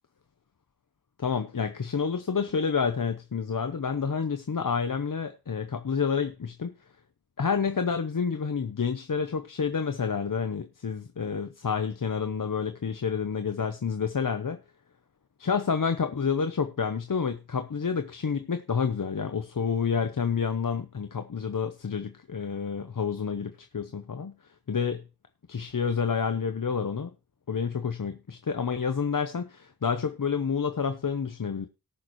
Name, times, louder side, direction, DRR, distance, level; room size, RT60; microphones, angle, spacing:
voice 1, 1.2-6.7 7.4-14.6 15.4-24.3 24.7-25.0 25.5-27.1 27.5-31.7, left 6 dB, 60° left, 0.8 m, -29 dB
19.0 x 6.5 x 3.1 m
wide cardioid pair, 65°, 36 cm